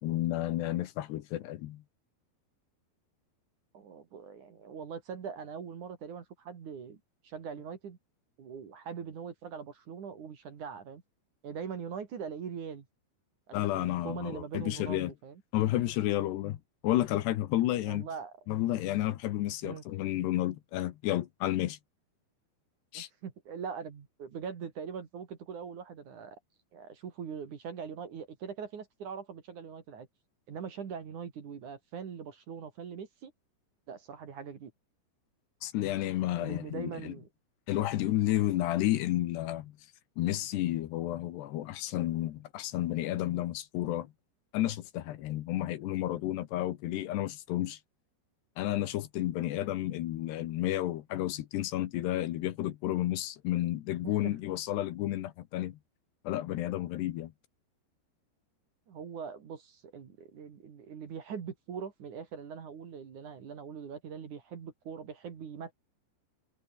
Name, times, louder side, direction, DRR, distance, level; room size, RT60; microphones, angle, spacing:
voice 1, 0.0-1.8 13.5-15.1 15.5-16.6 16.8-18.1 18.5-21.8 22.9-23.1 35.6-37.1 37.7-39.7 40.2-44.1 44.5-47.8 48.6-55.8 56.2-57.3, left 14 dB, 75° left, 3.2 m, -31 dB
voice 2, 3.7-7.0 7.2-8.0 8.4-11.0 11.4-12.9 13.6-15.4 17.9-18.3 19.6-19.8 22.9-26.4 26.7-30.1 30.5-33.3 33.9-34.7 36.4-37.3 54.0-54.3 58.9-65.7, right 6 dB, 50° right, 3.4 m, -42 dB
omnidirectional pair, 5.2 m